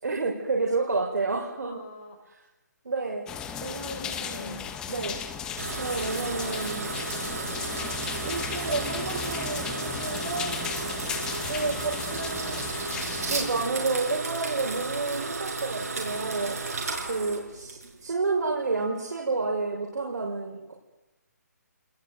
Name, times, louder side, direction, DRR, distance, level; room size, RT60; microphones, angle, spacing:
voice 1, 0.0-1.8 2.8-3.3 3.6-4.6 4.9-5.2 5.8-6.9 8.2-10.6 11.5-12.6 13.2-16.6 17.0-20.7, right 3 dB, 80° right, -1 dB, 5.9 m, -30 dB
voice 2, 1.7-2.2 3.1-3.2 3.5-4.7 5.5-5.6 6.0-7.0 16.9-17.1, left 4 dB, 40° left, 5 dB, 5.2 m, -45 dB
sound 1, 3.3-13.6, left 7 dB, 10° left, 1.1 m, -36 dB
sound 2, 5.6-18.1, right 3 dB, 60° right, 6.9 m, -33 dB
25.5 x 20.5 x 9.4 m, 1.1 s
hypercardioid pair, 170°, 9 cm